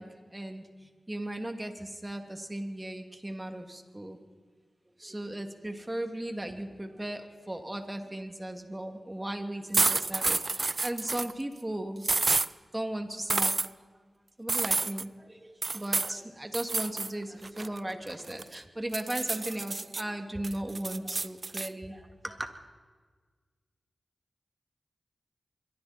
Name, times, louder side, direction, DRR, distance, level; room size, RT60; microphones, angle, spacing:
voice 1, 0.0-4.2 5.0-12.2 12.7-13.6 14.4-22.5, right 1 dB, 20° right, 5 dB, 2.9 m, -37 dB
sound 1, 9.7-11.3 12.0-12.5 13.3-13.7 14.5-15.0 15.6-16.1 16.5-17.1 17.4-18.5 18.9-20.0 20.4-21.7, right 3 dB, 50° right, 0.6 m, -29 dB
25.0 x 23.5 x 4.6 m, 1.5 s
cardioid pair, 45°, 0 cm